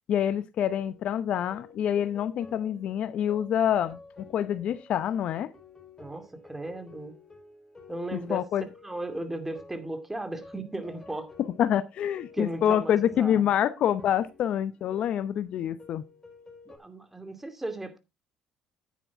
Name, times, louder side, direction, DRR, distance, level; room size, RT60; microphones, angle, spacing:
voice 1, 0.1-5.5 8.1-8.6 11.6-16.0, left 10 dB, 60° left, 0.7 m, -27 dB
sound 1, 0.7-16.8, left 4 dB, 25° left, 4.9 m, -52 dB
voice 2, 6.0-7.1 7.9-8.5 8.8-11.3 12.3-13.5 16.7-18.0, right 1 dB, 10° right, 2.4 m, -36 dB
9.9 x 9.4 x 3.6 m
hypercardioid pair, 65°, 2 cm